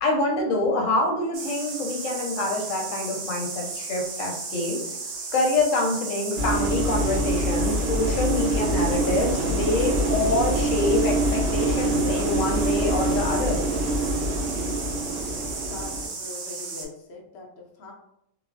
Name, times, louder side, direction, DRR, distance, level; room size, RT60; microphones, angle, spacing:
voice 1, 0.0-4.8 5.3-13.6, left 2 dB, 85° left, 1 dB, 1.0 m, -26 dB
sound 1, 1.3-16.8, right 4 dB, 75° right, 1.0 m, -35 dB
sound 2, 6.4-16.1, right 1 dB, 55° right, 1.4 m, -25 dB
voice 2, 15.7-17.9, left 3 dB, 65° left, 0 dB, 0.8 m, -42 dB
3.3 x 2.0 x 2.4 m, 0.79 s
omnidirectional pair, 1.3 m